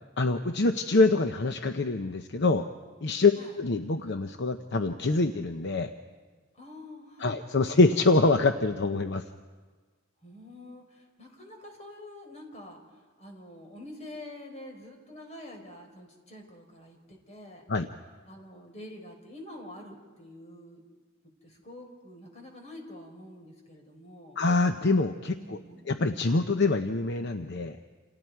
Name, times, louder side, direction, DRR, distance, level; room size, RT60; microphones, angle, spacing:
voice 1, 0.2-2.6 3.0-5.9 7.2-9.2 17.7-17.9 24.4-25.6 25.9-27.8, left 3 dB, 60° left, 7 dB, 0.8 m, -25 dB
voice 2, 6.5-7.3 10.2-17.6 18.2-20.8 21.4-24.4 25.4-25.9, left 1 dB, 35° left, 2 dB, 4.4 m, -47 dB
28.5 x 28.0 x 4.7 m, 1.4 s
head